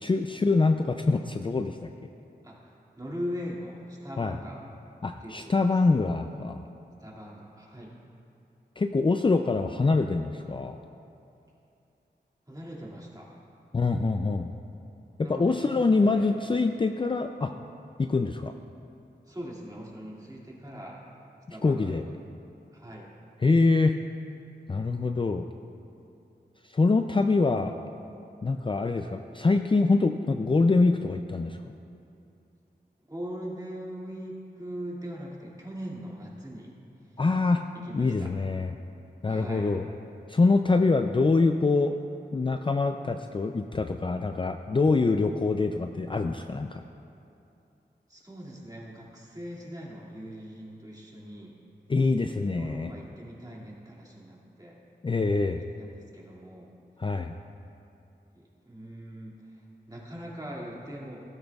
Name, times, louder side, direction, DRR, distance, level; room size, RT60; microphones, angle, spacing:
voice 1, 0.0-1.8 4.2-4.4 5.0-6.6 8.8-10.8 13.7-14.5 15.3-17.5 18.0-18.5 21.5-22.1 23.4-24.0 24.7-25.4 26.7-27.7 28.4-31.6 37.2-37.6 37.9-38.7 39.2-39.8 40.3-41.9 42.3-46.8 51.9-52.9 55.0-55.6 57.0-57.3, left 3 dB, 30° left, 6 dB, 0.4 m, -24 dB
voice 2, 2.4-4.6 5.2-5.6 7.0-7.9 12.5-13.3 15.2-16.3 19.3-21.0 21.5-22.1 22.7-23.1 33.1-36.7 37.7-38.3 39.2-39.7 48.1-51.5 52.5-54.8 55.8-56.7 58.3-61.2, equal, 20° right, -4 dB, 2.3 m, -41 dB
15.5 x 13.0 x 2.4 m, 2.7 s
wide cardioid pair, 65°, 18 cm